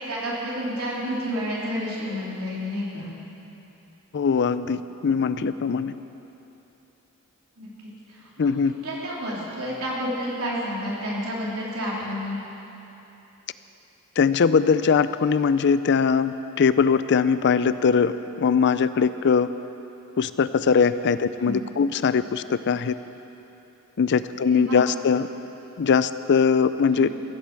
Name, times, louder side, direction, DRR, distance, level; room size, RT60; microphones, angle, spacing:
voice 1, 0.0-3.1 7.6-12.4 21.4-21.6 24.4-24.8 26.9-27.1, equal, 90° right, -5 dB, 3.6 m, -30 dB
voice 2, 4.1-5.9 8.4-8.7 14.2-19.5 20.2-22.9 24.0-25.3 25.8-27.1, left 6 dB, 55° left, 13 dB, 0.4 m, -21 dB
15.0 x 8.7 x 7.6 m, 2.9 s
head